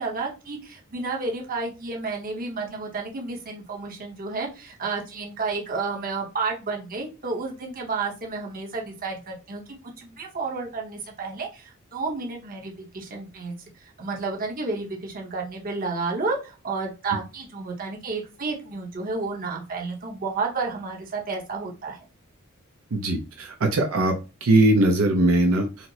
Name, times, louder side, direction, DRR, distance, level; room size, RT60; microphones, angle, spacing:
voice 1, 0.0-9.6 10.0-13.5 14.0-22.0, right 4 dB, 40° right, 0 dB, 0.9 m, -31 dB
voice 2, 22.9-24.1 24.4-25.9, right 2 dB, 75° right, 3 dB, 0.6 m, -20 dB
4.3 x 2.0 x 2.7 m, 0.30 s
head